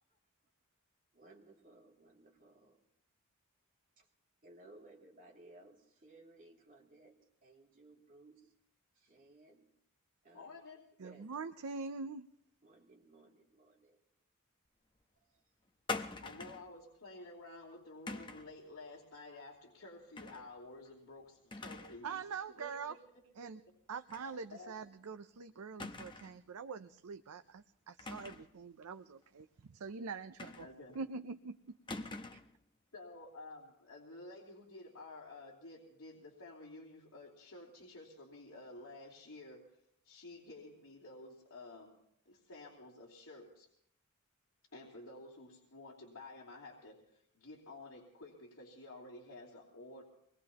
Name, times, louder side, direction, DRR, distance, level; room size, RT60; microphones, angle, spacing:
voice 1, 1.1-2.8 4.0-4.1 4.4-8.5 8.9-9.7 10.2-10.6 11.0-11.3 12.6-14.0 15.2-15.4, right 2 dB, 40° right, -1 dB, 2.7 m, -60 dB
voice 2, 10.3-10.9 16.2-22.2 22.6-23.0 24.5-24.8 30.6-31.0 32.9-39.6 40.0-42.0 42.2-43.7 44.7-50.0, left 2 dB, 70° left, -6 dB, 2.9 m, -52 dB
voice 3, 11.0-12.3 22.0-23.0 23.4-23.6 23.9-30.7 30.9-31.8, right 5 dB, 90° right, 9 dB, 0.5 m, -44 dB
sound 1, 15.9-16.7 18.1-18.5 20.2-20.5 20.9-21.0 21.5-22.0 22.4-22.5 24.1-24.3 24.6-24.7 25.8-26.4 28.0-28.5 30.4-31.0 31.9-32.5, left 3 dB, 20° left, 0.9 m, -44 dB
24.0 x 20.5 x 2.9 m, 0.72 s
head